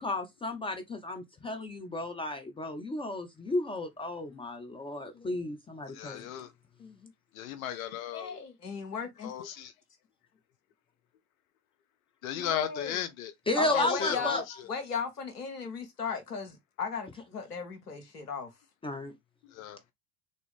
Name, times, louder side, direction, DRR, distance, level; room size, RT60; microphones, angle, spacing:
voice 1, 0.0-6.2 13.5-14.4 18.8-19.1, left 1 dB, 15° left, 0.4 m, -33 dB
voice 2, 5.1-5.5 6.8-7.1 8.1-9.3 12.4-13.0 13.6-18.5, left 5 dB, 80° left, 1.1 m, -36 dB
voice 3, 5.9-6.5 7.4-8.4 9.2-9.7 12.2-13.3 13.7-14.4 19.5-19.8, left 9 dB, 65° left, 0.6 m, -35 dB
3.5 x 2.6 x 3.4 m
figure-of-eight pair, 70°, 46 cm